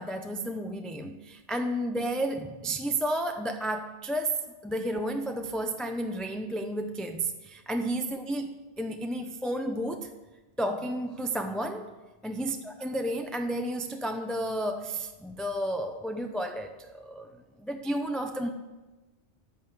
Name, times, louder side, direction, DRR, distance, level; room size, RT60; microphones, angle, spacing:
voice 1, 0.0-10.1 10.6-11.9 12.2-17.3 17.6-18.5, right 1 dB, ahead, 5 dB, 0.5 m, -32 dB
11.0 x 8.7 x 6.5 m, 1.2 s
omnidirectional pair, 1.2 m